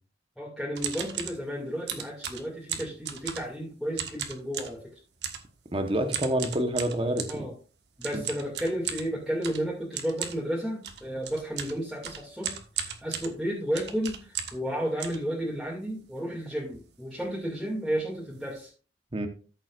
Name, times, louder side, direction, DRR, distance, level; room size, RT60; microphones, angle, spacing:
voice 1, 0.4-4.8 7.3-7.5 8.0-18.7, equal, ahead, -6 dB, 2.4 m, -32 dB
Mechanical Keyboard Typing Cherry Blue Switches, 0.7-1.4 1.9-3.6 3.9-4.8 5.2-5.5 6.1-7.4 8.0-14.7 15.0-15.8 16.3-16.4 16.6-16.9 17.2-17.4 17.9-18.0 18.3-18.6, right 8 dB, 70° right, 1.4 m, -36 dB
voice 2, 5.7-7.5 8.1-8.2 19.1-19.3, right 1 dB, 30° right, 6 dB, 1.1 m, -28 dB
13.5 x 7.3 x 2.5 m, 0.36 s
head